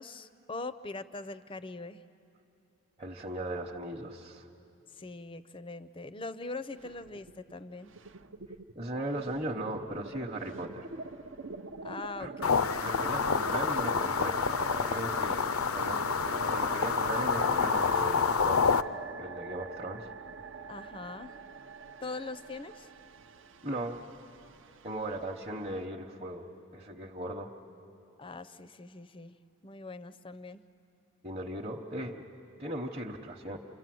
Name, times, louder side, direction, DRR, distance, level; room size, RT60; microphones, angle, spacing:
voice 1, 0.0-2.0 5.0-7.9 11.8-12.6 20.7-21.4 22.0-22.9 28.2-29.4 29.6-30.6, left 3 dB, 25° left, 13 dB, 0.5 m, -42 dB
voice 2, 3.0-4.5 8.7-10.9 12.2-12.3 12.8-14.4 14.8-15.4 15.7-18.7 19.2-20.1 23.6-24.0 24.8-26.4 26.7-27.5 31.2-32.2 32.6-33.6, right 1 dB, 25° right, -3 dB, 1.0 m, -37 dB
sound 1, 6.7-7.5 7.8-25.9, right 4 dB, 55° right, 0.6 m, -44 dB
sound 2, 12.4-18.8, left 5 dB, 75° left, 0.6 m, -28 dB
29.0 x 25.5 x 7.7 m, 2.7 s
head